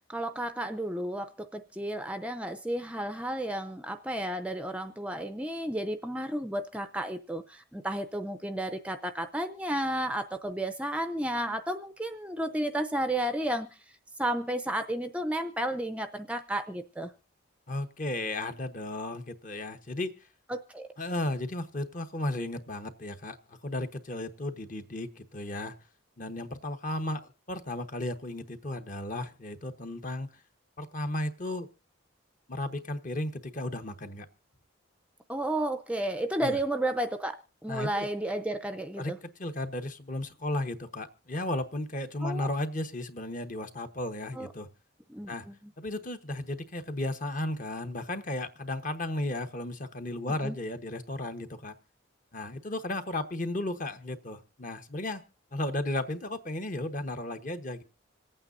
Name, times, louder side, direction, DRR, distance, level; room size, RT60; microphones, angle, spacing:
voice 1, 0.1-13.7 14.2-17.1 20.5-20.9 35.3-39.2 42.2-42.5 44.4-44.5 45.1-45.5 50.4-50.6, right 1 dB, 5° right, 7 dB, 0.5 m, -32 dB
voice 2, 17.7-20.2 21.0-25.7 26.2-30.4 30.8-31.7 32.5-34.3 36.4-36.6 37.7-38.1 39.0-44.7 45.3-45.5 45.8-51.8 52.3-55.2 55.5-57.8, left 1 dB, 40° left, 8 dB, 1.0 m, -34 dB
26.5 x 8.9 x 2.6 m, 0.33 s
head